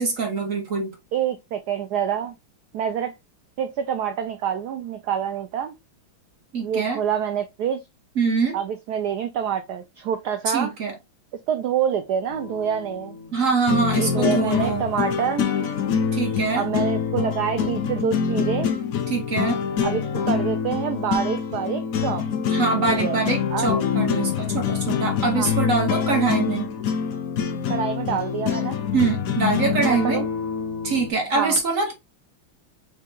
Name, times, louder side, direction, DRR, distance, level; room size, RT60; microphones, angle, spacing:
voice 1, 0.0-0.9 6.5-7.0 8.2-8.6 10.5-10.9 13.3-14.8 16.1-16.6 19.1-19.6 22.5-26.7 28.9-30.2 30.8-31.9, right 4 dB, 50° right, 1.1 m, -24 dB
voice 2, 1.1-2.3 2.7-3.2 3.6-5.7 6.6-7.8 8.5-10.7 11.5-13.2 14.0-15.5 16.6-18.7 19.8-22.3 22.8-23.2 23.5-23.8 25.4-25.5 27.7-28.8 29.9-30.3 31.3-31.6, right 8 dB, 80° right, 0.9 m, -26 dB
sound 1, 12.3-31.1, left 7 dB, 70° left, 0.8 m, -25 dB
4.6 x 2.8 x 3.7 m
omnidirectional pair, 2.3 m